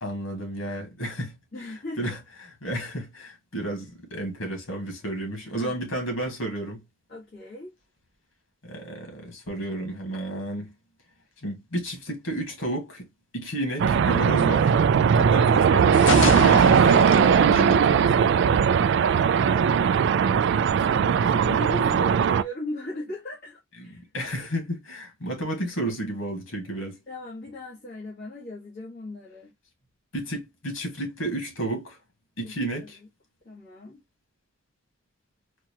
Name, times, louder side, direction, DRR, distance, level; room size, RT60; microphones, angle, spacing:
voice 1, 0.0-1.3 2.0-2.2 2.6-6.8 8.6-10.7 11.4-13.1 13.3-14.7 15.1-18.4 23.8-27.0 30.1-32.0 32.4-33.0, right 1 dB, 90° left, 1.7 m, -32 dB
voice 2, 1.5-2.1 5.4-5.7 7.1-7.7 20.3-24.0 27.1-29.5 32.4-33.1 33.4-34.0, left 1 dB, 50° left, 1.5 m, -38 dB
sound 1, 13.8-22.4, right 7 dB, 65° right, 0.3 m, -19 dB
sound 2, 15.9-18.8, left 4 dB, 70° left, 0.7 m, -29 dB
4.4 x 2.4 x 2.9 m
head